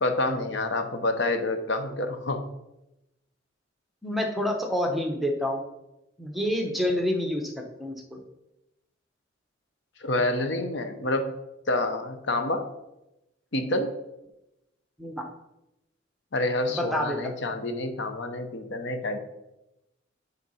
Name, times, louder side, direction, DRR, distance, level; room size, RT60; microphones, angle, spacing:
voice 1, 0.0-2.4 10.0-11.3 11.7-12.6 13.5-13.9 16.3-19.2, left 2 dB, 60° left, 7 dB, 0.8 m, -28 dB
voice 2, 4.0-5.6 6.2-7.5 7.8-8.2 15.0-15.3 16.8-17.2, left 1 dB, ahead, 2 dB, 0.9 m, -28 dB
8.1 x 4.0 x 5.5 m, 0.92 s
head